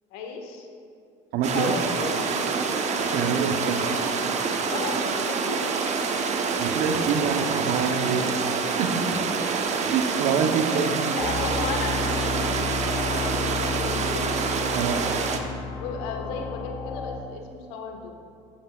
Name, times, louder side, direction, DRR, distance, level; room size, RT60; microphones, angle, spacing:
voice 1, 0.1-0.7 1.5-2.3 3.2-3.9 4.2-4.3 4.7-5.0 5.3-5.7 10.7-10.8 11.1-15.3 15.8-18.1, left 4 dB, 70° left, 2 dB, 1.8 m, -35 dB
voice 2, 1.3-1.7 3.0-3.8 6.6-8.4 8.8-9.2 9.8-10.9 14.7-15.2, right 6 dB, 65° right, 6 dB, 1.1 m, -26 dB
sound 1, 1.4-15.4, right 5 dB, 45° right, 1.2 m, -26 dB
sound 2, 11.2-17.2, left 5 dB, 50° left, 2.1 m, -33 dB
14.5 x 12.5 x 2.6 m, 2.5 s
hypercardioid pair, 70°, 17 cm